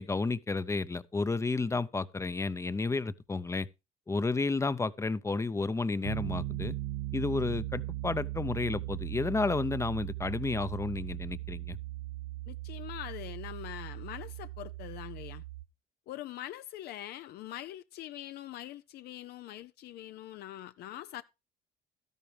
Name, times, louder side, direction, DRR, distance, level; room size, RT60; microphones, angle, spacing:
voice 1, 0.0-3.7 4.1-6.7 7.1-11.8, left 3 dB, 15° left, 0.6 m, -31 dB
Piano, 6.0-15.7, right 17 dB, 80° right, 0.7 m, -38 dB
voice 2, 12.5-15.4 16.1-21.2, left 13 dB, 70° left, 0.6 m, -43 dB
13.0 x 11.0 x 3.3 m
cardioid pair, 110°, 17 cm